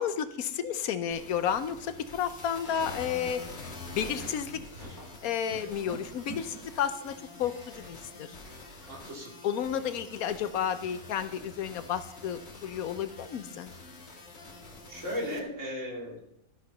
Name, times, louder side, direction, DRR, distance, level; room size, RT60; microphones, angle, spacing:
voice 1, 0.0-3.4 3.9-4.6 5.2-8.3 9.4-13.7, left 8 dB, 80° left, 12 dB, 1.2 m, -32 dB
sound 1, 1.1-15.4, left 3 dB, 45° left, 1.8 m, -46 dB
sound 2, 3.7-6.7 7.3-8.4 8.7-8.8, right 2 dB, 85° right, 5.6 m, -47 dB
voice 2, 8.8-9.3 14.9-16.2, equal, 55° right, -1 dB, 3.2 m, -36 dB
13.5 x 6.7 x 5.4 m, 0.77 s
omnidirectional pair, 1.5 m